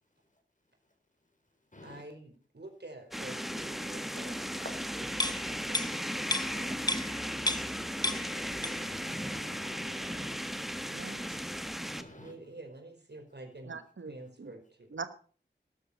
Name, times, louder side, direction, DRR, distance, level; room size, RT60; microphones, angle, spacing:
voice 1, 1.8-6.9 12.1-13.8 14.1-15.0, right 2 dB, 60° right, 4 dB, 4.8 m, -49 dB
sound 1, 3.1-12.0, equal, ahead, 1.5 m, -36 dB
sound 2, 5.2-9.0 9.3-9.5, left 1 dB, 20° left, 0.7 m, -33 dB
voice 2, 8.1-10.4 11.9-12.3, left 2 dB, 40° left, 4 dB, 4.8 m, -50 dB
voice 3, 10.9-11.2 13.7-14.1 14.4-14.5 14.9-15.1, right 4 dB, 90° right, 11 dB, 1.2 m, -41 dB
13.5 x 12.5 x 5.8 m, 0.42 s
wide cardioid pair, 60°, 19 cm